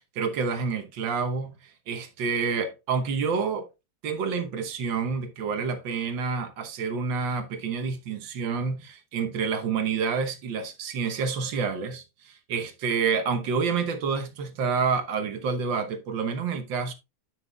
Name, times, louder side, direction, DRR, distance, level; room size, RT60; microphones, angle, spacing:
voice 1, 0.1-1.5 1.9-3.7 4.0-16.9, right 5 dB, 70° right, 1.7 m, -28 dB
11.0 x 6.0 x 2.3 m
omnidirectional pair, 2.2 m